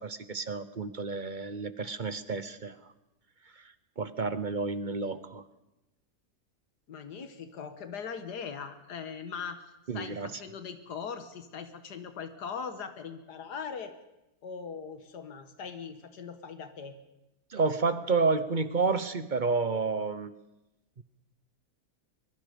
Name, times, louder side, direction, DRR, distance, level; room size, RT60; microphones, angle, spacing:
voice 1, 0.0-2.8 3.6-5.4 9.9-10.4 17.5-20.3 21.0-21.1, right 4 dB, 40° right, 13 dB, 0.8 m, -30 dB
voice 2, 6.9-9.6 9.9-13.9 14.4-17.0, left 6 dB, 85° left, 9 dB, 1.9 m, -40 dB
23.0 x 22.0 x 5.2 m, 0.94 s
omnidirectional pair, 1.7 m